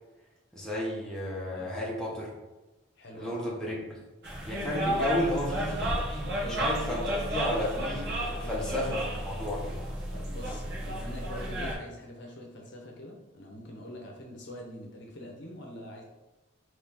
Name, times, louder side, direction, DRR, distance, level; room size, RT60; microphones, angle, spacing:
voice 1, 0.5-2.3 3.1-4.0 4.5-9.8, left 1 dB, 5° left, -6 dB, 1.0 m, -33 dB
voice 2, 3.0-3.4 5.2-5.9 6.4-6.6 8.4-8.6 10.1-16.0, left 1 dB, 60° left, 0 dB, 0.9 m, -44 dB
sound 1, 4.2-11.7, equal, 55° right, 1.1 m, -32 dB
4.4 x 3.2 x 3.6 m, 1.1 s
head